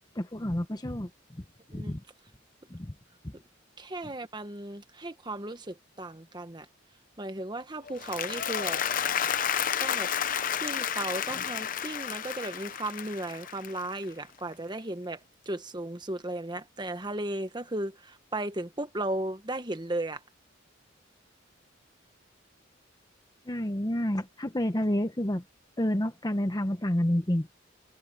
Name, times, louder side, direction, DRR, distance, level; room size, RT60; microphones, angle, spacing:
voice 1, 0.1-1.1 1.7-2.0 2.7-2.9 3.2-3.3 23.5-25.4 25.8-27.5, left 1 dB, 20° left, 0.9 m, -29 dB
voice 2, 3.8-6.7 7.2-8.8 9.8-10.1 10.5-15.2 15.4-20.2, right 1 dB, 20° right, 1.4 m, -35 dB
Applause, 7.9-14.2, left 8 dB, 45° left, 0.8 m, -31 dB
head